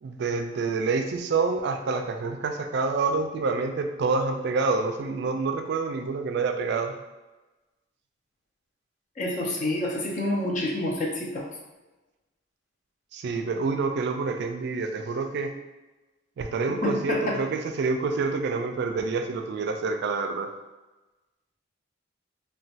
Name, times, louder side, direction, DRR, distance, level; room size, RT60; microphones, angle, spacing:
voice 1, 0.0-6.9 13.1-15.5 16.4-20.5, right 4 dB, 60° right, 6 dB, 0.3 m, -27 dB
voice 2, 9.2-11.5 16.8-17.4, left 1 dB, 40° left, -1 dB, 0.5 m, -28 dB
3.0 x 2.2 x 2.7 m, 1.1 s
head